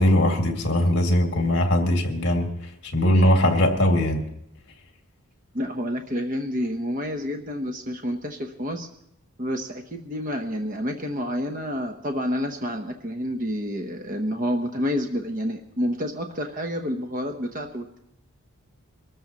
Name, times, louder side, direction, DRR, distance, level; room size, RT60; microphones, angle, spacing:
voice 1, 0.0-4.2, left 1 dB, 50° left, 3 dB, 2.0 m, -20 dB
voice 2, 5.5-8.9 9.4-18.0, equal, 35° right, 4 dB, 0.8 m, -29 dB
23.5 x 13.5 x 2.9 m, 0.76 s
head